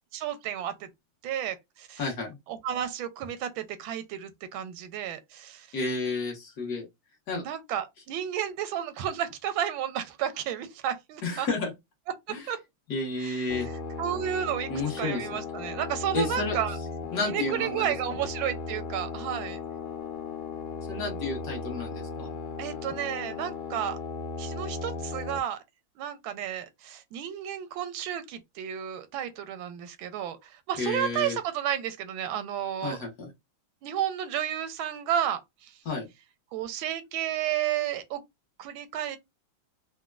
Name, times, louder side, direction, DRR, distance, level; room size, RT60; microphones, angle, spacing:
voice 1, 0.1-0.9 1.2-2.0 2.5-5.7 7.4-11.5 12.5-12.6 13.2-13.7 14.0-14.7 15.0-16.8 17.3-19.6 22.6-24.0 24.4-25.6 26.0-33.0 33.8-35.7 36.5-38.2 38.6-39.2, right 10 dB, 90° right, 1.4 m, -32 dB
voice 2, 2.0-2.4 5.7-6.9 7.3-7.4 11.2-11.7 12.3-12.5 12.9-13.7 14.7-15.3 16.1-16.6 17.1-17.9 20.9-22.3 30.8-31.4 32.8-33.3 35.8-36.1, left 3 dB, 55° left, 1.4 m, -31 dB
sound 1, 13.5-25.4, left 4 dB, 90° left, 1.4 m, -36 dB
4.0 x 2.1 x 2.3 m
omnidirectional pair, 2.1 m